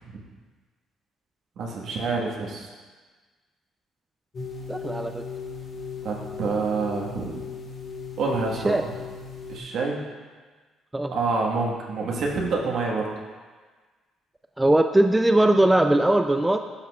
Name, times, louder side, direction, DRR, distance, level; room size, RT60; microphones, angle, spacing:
voice 1, 1.6-2.7 6.0-7.3 8.2-8.9 9.5-10.0 11.1-13.1, right 4 dB, 65° right, -1 dB, 1.4 m, -27 dB
sound 1, 4.3-9.6, left 5 dB, 40° left, 1.3 m, -37 dB
voice 2, 4.7-5.2 8.6-8.8 10.9-11.1 14.6-16.6, right 1 dB, 10° right, 6 dB, 0.3 m, -20 dB
11.5 x 5.8 x 2.4 m, 1.4 s
cardioid pair, 90°, 0 cm